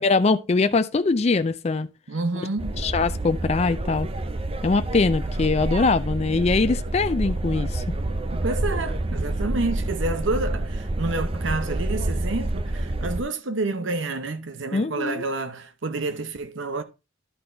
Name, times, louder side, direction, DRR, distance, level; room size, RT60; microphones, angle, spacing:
voice 1, 0.0-1.9 2.8-4.1 4.6-7.8 14.7-15.2, left 3 dB, 35° left, 0.4 m, -22 dB
voice 2, 2.1-2.8 8.3-16.8, right 2 dB, 75° right, 0.9 m, -29 dB
sound 1, 2.6-13.2, right 1 dB, 30° right, 0.6 m, -28 dB
11.5 x 3.9 x 4.4 m
head